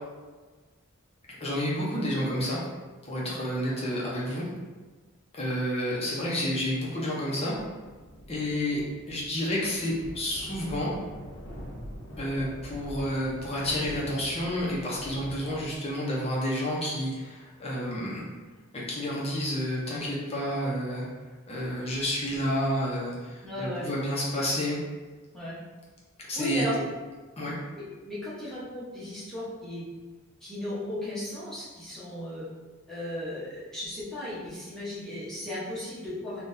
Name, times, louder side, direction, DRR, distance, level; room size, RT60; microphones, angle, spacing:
voice 1, 1.4-2.6 3.0-4.4 5.3-7.6 8.3-8.8 9.1-10.9 12.2-18.2 18.7-21.1 21.5-24.8 26.2-26.6 27.4-27.6, equal, 30° left, -5 dB, 0.7 m, -30 dB
sound 1, 7.5-15.9, equal, 85° left, 1.0 m, -44 dB
voice 2, 23.4-23.9 25.3-25.6 26.3-26.7 27.7-29.8 30.4-32.4 32.9-36.4, left 1 dB, ahead, -10 dB, 0.9 m, -36 dB
3.7 x 2.4 x 2.6 m, 1.3 s
head